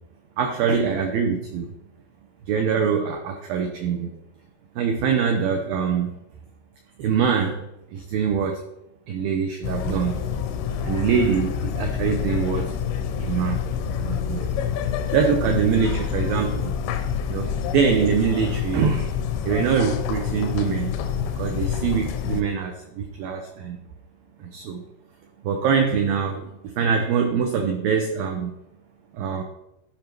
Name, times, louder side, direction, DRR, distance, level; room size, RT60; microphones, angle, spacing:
voice 1, 0.4-1.7 2.5-4.1 4.8-6.1 7.0-7.7 7.9-8.6 9.1-10.2 10.8-12.7 13.2-13.6 14.0-14.5 15.1-16.8 17.3-19.1 19.4-20.9 21.2-23.8 24.4-24.8 25.4-28.5 29.1-29.4, right 6 dB, 90° right, 4 dB, 2.0 m, -24 dB
sound 1, 9.6-22.4, left 8 dB, 90° left, 3.4 m, -27 dB
13.5 x 5.4 x 4.6 m, 0.86 s
omnidirectional pair, 5.5 m